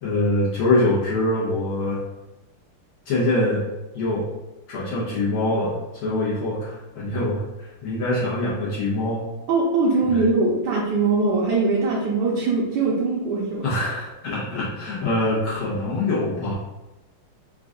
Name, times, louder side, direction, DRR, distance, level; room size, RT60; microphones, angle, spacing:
voice 1, 0.0-2.0 3.1-3.6 3.9-4.3 4.7-9.2 10.1-10.3 13.6-16.5, left 2 dB, 80° left, -8 dB, 2.0 m, -24 dB
voice 2, 9.5-13.6, right 3 dB, 65° right, -4 dB, 1.2 m, -21 dB
4.7 x 2.5 x 3.7 m, 1.0 s
omnidirectional pair, 2.4 m